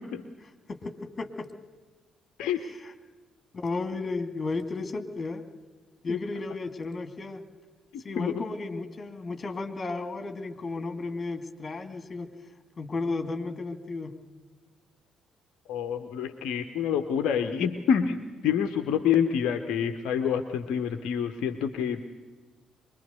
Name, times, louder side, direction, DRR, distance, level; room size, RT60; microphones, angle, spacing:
voice 1, 0.7-1.5 2.6-2.9 3.5-5.4 6.0-7.4 8.0-12.3 12.8-14.2, left 3 dB, 30° left, 8 dB, 2.2 m, -34 dB
voice 2, 7.9-8.4 15.7-22.0, left 8 dB, 60° left, 7 dB, 1.0 m, -27 dB
24.5 x 21.0 x 6.7 m, 1.3 s
figure-of-eight pair, 45°, 0 cm